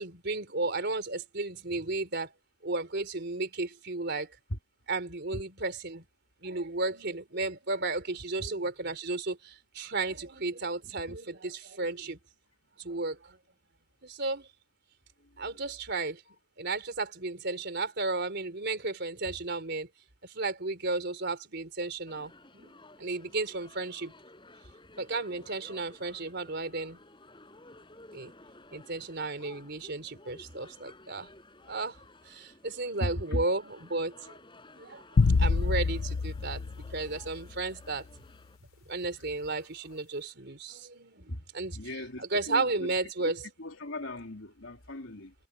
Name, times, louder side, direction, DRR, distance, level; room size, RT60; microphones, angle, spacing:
voice 1, 0.0-2.3 2.6-4.3 4.9-6.0 6.4-12.2 12.8-13.4 14.0-14.5 15.4-16.2 16.6-19.9 20.2-22.7 23.0-24.1 25.0-27.0 28.1-28.3 28.7-31.3 31.7-32.0 32.2-34.3 34.8-38.1 38.9-43.5, right 3 dB, 55° right, 3.6 m, -34 dB
sound 1, 22.1-38.6, left 2 dB, 25° left, 4.8 m, -55 dB
voice 2, 33.0-33.4 39.2-39.3 41.3-41.4 41.7-42.9 43.2-43.3 43.6-45.3, left 1 dB, 70° left, 3.3 m, -37 dB
sound 2, 35.2-37.7, left 4 dB, 85° left, 0.6 m, -26 dB
head